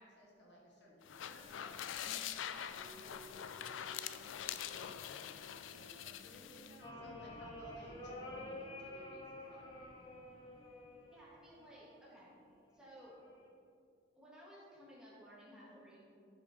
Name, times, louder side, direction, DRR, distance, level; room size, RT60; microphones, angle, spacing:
voice 1, 0.0-1.9 2.5-3.7 4.3-5.3 5.6-9.7, equal, 65° left, -3 dB, 1.7 m, -59 dB
sound 1, 1.0-6.8, left 9 dB, 90° left, 0.4 m, -44 dB
Singing, 2.0-6.4 6.6-12.6, right 1 dB, 50° right, 0.7 m, -62 dB
sound 2, 6.8-11.8 13.0-13.5, left 1 dB, 25° left, 1.1 m, -50 dB
voice 2, 11.1-12.3 12.7-13.1 14.2-16.0, equal, 5° right, -8 dB, 2.3 m, -57 dB
11.0 x 5.7 x 4.5 m, 2.5 s
head